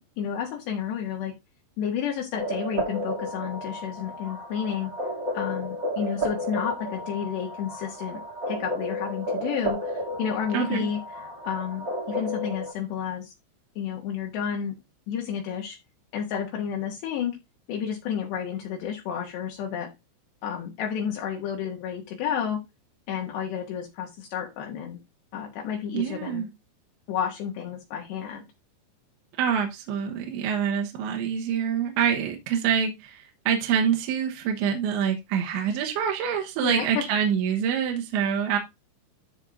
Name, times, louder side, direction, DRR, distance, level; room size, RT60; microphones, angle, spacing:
voice 1, 0.0-1.3 1.8-4.9 5.3-8.2 8.5-13.3 13.8-14.7 15.1-15.8 16.1-17.4 17.7-19.9 20.4-22.6 23.1-25.0 25.3-26.5 27.1-28.5 36.6-36.9, left 8 dB, 75° left, 0 dB, 3.4 m, -31 dB
sound 1, 2.4-12.7, equal, 35° right, 2.1 m, -32 dB
voice 2, 10.5-10.9 25.9-26.5 29.4-38.6, right 8 dB, 80° right, 2 dB, 3.4 m, -26 dB
13.5 x 5.5 x 2.5 m, 0.23 s
omnidirectional pair, 5.4 m